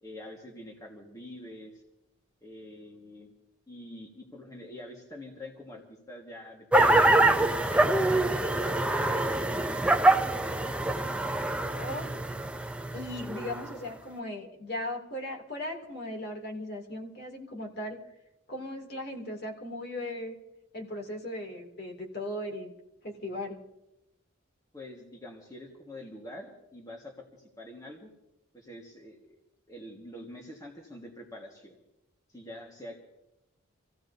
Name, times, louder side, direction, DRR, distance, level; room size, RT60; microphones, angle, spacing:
voice 1, 0.0-1.8 2.4-3.3 3.7-9.4 24.7-28.1 28.5-29.4 29.7-31.7 32.3-33.0, left 1 dB, 15° left, 0 dB, 1.5 m, -46 dB
sound 1, 6.7-13.7, right 2 dB, 5° right, 0.4 m, -25 dB
voice 2, 11.7-12.1 12.9-18.0 18.5-20.4 20.7-22.7 23.0-23.6, left 1 dB, 50° left, 0 dB, 2.6 m, -37 dB
27.0 x 15.5 x 2.7 m, 0.90 s
head